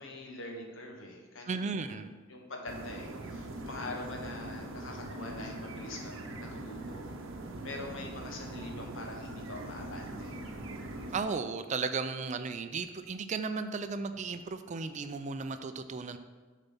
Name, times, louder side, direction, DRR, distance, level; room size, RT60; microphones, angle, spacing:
voice 1, 0.0-7.1 7.6-10.4, left 2 dB, 80° left, 1 dB, 1.3 m, -44 dB
voice 2, 1.5-2.1 11.1-16.2, right 4 dB, 35° right, 10 dB, 0.4 m, -35 dB
sound 1, 2.7-11.2, right 1 dB, 85° right, 0.8 m, -42 dB
6.9 x 4.2 x 5.5 m, 1.4 s
head